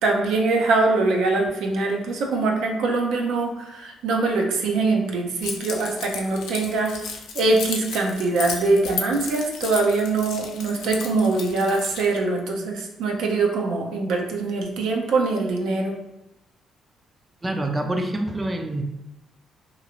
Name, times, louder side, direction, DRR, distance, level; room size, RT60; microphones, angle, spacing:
voice 1, 0.0-6.9 7.3-15.9, right 3 dB, 85° right, 1 dB, 0.5 m, -23 dB
Keys jangling, 5.4-12.2, left 5 dB, 90° left, 0.4 m, -34 dB
voice 2, 17.4-18.8, right 1 dB, 20° right, 4 dB, 0.3 m, -26 dB
2.9 x 2.4 x 2.8 m, 0.94 s
cardioid pair, 90°, 0 cm